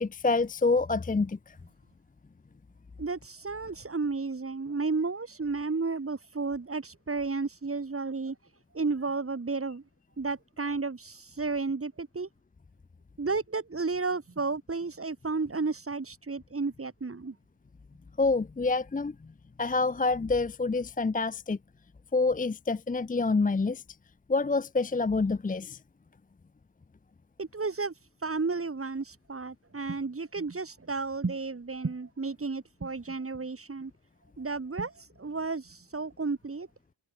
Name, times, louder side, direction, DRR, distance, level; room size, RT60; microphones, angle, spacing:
voice 1, 0.0-1.5 18.2-19.1 19.6-21.6 22.1-23.8 24.3-25.8, left 3 dB, 15° left, 0.8 m, -27 dB
voice 2, 3.0-8.3 8.7-9.8 10.2-12.3 13.2-17.3 27.4-27.9 28.2-33.9 34.4-36.7, right 4 dB, 30° right, 7.9 m, -32 dB
cardioid pair, 95°, 46 cm